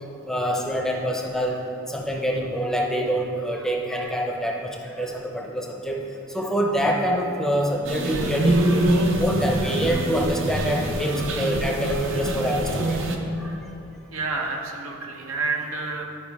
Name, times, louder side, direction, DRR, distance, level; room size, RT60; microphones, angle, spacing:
voice 1, 0.3-1.6 1.9-4.7 5.0-6.0 6.3-8.8 9.2-13.0 13.4-13.5, equal, ahead, 0 dB, 0.6 m, -26 dB
sound 1, 7.8-13.2, right 1 dB, 65° right, 0.7 m, -24 dB
voice 2, 14.1-16.0, right 3 dB, 85° right, 1 dB, 0.9 m, -29 dB
11.0 x 5.0 x 3.5 m, 2.7 s
head